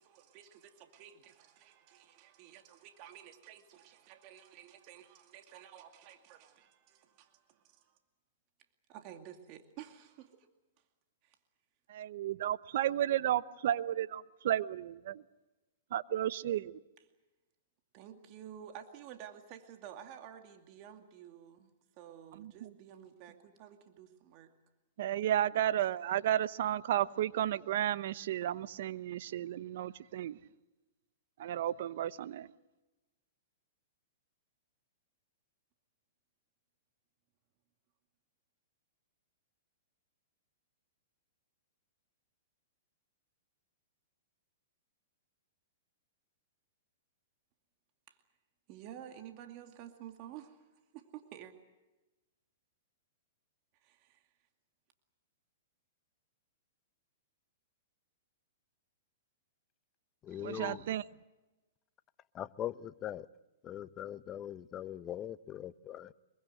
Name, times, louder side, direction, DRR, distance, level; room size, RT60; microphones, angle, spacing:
voice 1, 0.0-8.0 8.9-10.5 11.2-11.4 17.9-21.7 22.0-24.5 48.1-48.2 48.7-50.7 50.9-51.5 53.7-54.3, right 10 dB, 40° right, 2.3 m, -52 dB
voice 2, 11.9-15.2 15.9-16.7 22.4-22.7 25.0-30.4 31.4-32.5 60.4-61.0, right 12 dB, 65° right, 1.0 m, -33 dB
voice 3, 60.2-60.8 62.3-63.3 63.6-66.1, left 11 dB, 25° left, 0.8 m, -41 dB
24.5 x 23.0 x 7.9 m
hypercardioid pair, 130°, 0 cm